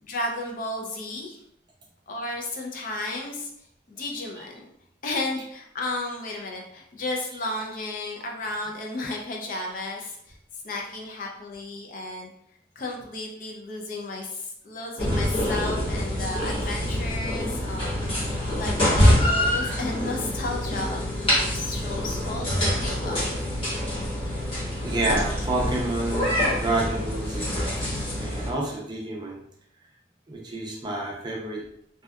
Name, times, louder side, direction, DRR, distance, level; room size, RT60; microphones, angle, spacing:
voice 1, 0.0-1.4 2.1-3.5 3.9-4.6 5.0-10.4 10.6-12.3 12.8-23.3, left 2 dB, 50° left, 0 dB, 0.4 m, -33 dB
sound 1, 15.0-28.5, equal, 30° left, 1.0 m, -25 dB
voice 2, 24.8-27.7 28.2-29.4 30.3-31.6, right 2 dB, 25° right, -1 dB, 0.4 m, -29 dB
2.6 x 2.2 x 2.2 m, 0.72 s
head